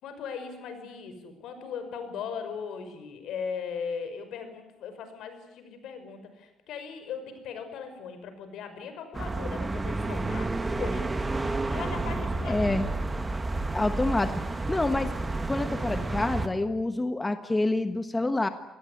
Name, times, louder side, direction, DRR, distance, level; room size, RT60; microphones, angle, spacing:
voice 1, 0.0-11.1 11.7-12.8, left 6 dB, 75° left, 8 dB, 5.8 m, -38 dB
sound 1, 9.1-16.5, right 2 dB, 15° right, 1.9 m, -30 dB
voice 2, 12.4-12.9 13.7-14.4 14.7-15.1 15.5-18.5, left 2 dB, 15° left, 9 dB, 1.4 m, -27 dB
28.0 x 20.0 x 9.8 m, 0.92 s
cardioid pair, 140°, 0 cm